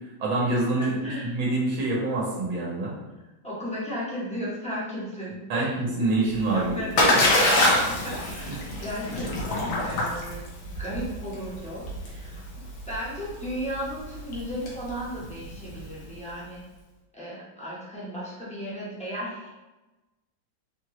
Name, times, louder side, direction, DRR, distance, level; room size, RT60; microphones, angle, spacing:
voice 1, 0.2-1.0 1.3-3.0 5.5-7.1, right 2 dB, 85° right, -4 dB, 1.8 m, -26 dB
voice 2, 0.8-1.4 3.4-5.7 6.0-6.1 6.5-10.5 10.8-12.4 12.9-16.6 17.1-19.5, equal, 5° left, -8 dB, 0.5 m, -35 dB
Splash splatter, 6.3-16.1, left 1 dB, 80° left, 1.7 m, -26 dB
4.4 x 2.9 x 3.0 m, 1.1 s
omnidirectional pair, 2.1 m